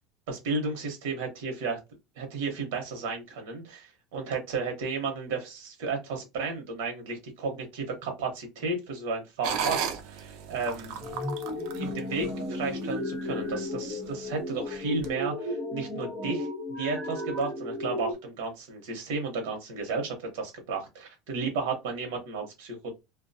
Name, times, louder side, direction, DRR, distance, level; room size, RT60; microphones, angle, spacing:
voice 1, 0.3-1.8 2.2-11.0 11.7-22.9, right 4 dB, 85° right, 3 dB, 0.8 m, -33 dB
sound 1, 9.4-12.9 13.4-13.5 14.0-14.4 15.0-15.1, right 7 dB, 60° right, 0.4 m, -34 dB
sound 2, 11.0-18.1, left 1 dB, 20° right, 1.1 m, -34 dB
2.3 x 2.2 x 2.6 m, 0.24 s
cardioid pair, 150°, 0 cm